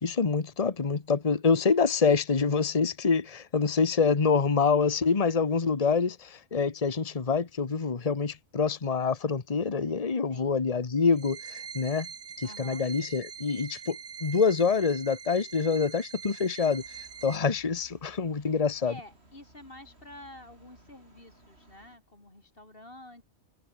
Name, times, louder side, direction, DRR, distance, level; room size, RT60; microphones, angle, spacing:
voice 1, 0.0-12.1 12.4-16.8 17.2-18.9, left 5 dB, 30° left, 1.3 m, -26 dB
voice 2, 10.3-10.6 12.4-12.8 18.8-23.2, left 1 dB, 50° left, 4.9 m, -49 dB
sound 1, 11.1-17.4, right 6 dB, 80° right, 1.7 m, -43 dB
sound 2, 16.7-22.0, right 1 dB, 60° right, 6.5 m, -59 dB
omnidirectional pair, 1.3 m